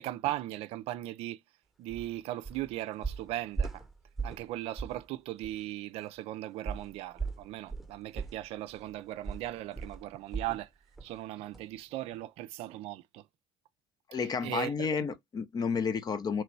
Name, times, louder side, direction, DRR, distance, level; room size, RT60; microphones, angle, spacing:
voice 1, 0.0-1.4 1.8-3.8 4.2-10.7 11.0-13.2 14.4-14.9, right 15 dB, 65° right, 0.4 m, -38 dB
sound 1, 1.9-2.1 2.4-2.7 3.0-4.5 4.8-5.0 5.4-5.5 6.7-10.7 11.0-11.2 11.5-11.6, right 5 dB, ahead, 0.9 m, -38 dB
voice 2, 14.1-16.4, left 6 dB, 40° left, 0.7 m, -31 dB
3.0 x 2.9 x 4.5 m
hypercardioid pair, 65°, 11 cm